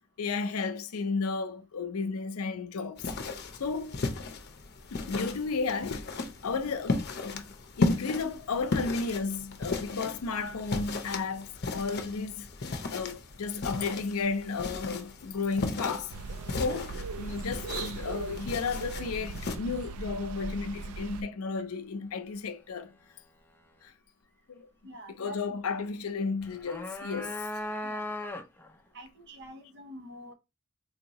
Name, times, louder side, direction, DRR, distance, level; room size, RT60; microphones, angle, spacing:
voice 1, 0.0-3.1 3.5-4.0 4.9-6.0 6.4-7.4 7.8-12.5 12.9-16.1 16.5-22.9 23.8-23.9 24.5-24.7 25.2-27.5, left 4 dB, 85° left, 0.5 m, -33 dB
sound 1, 3.0-19.6, left 3 dB, 50° left, 0.7 m, -36 dB
sound 2, 16.1-21.2, right 4 dB, 85° right, 0.4 m, -39 dB
voice 2, 24.8-25.6 27.8-28.1 28.9-30.3, right 1 dB, 55° right, 1.0 m, -47 dB
sound 3, 26.4-28.7, left 1 dB, 10° left, 0.5 m, -37 dB
4.1 x 2.7 x 2.9 m
head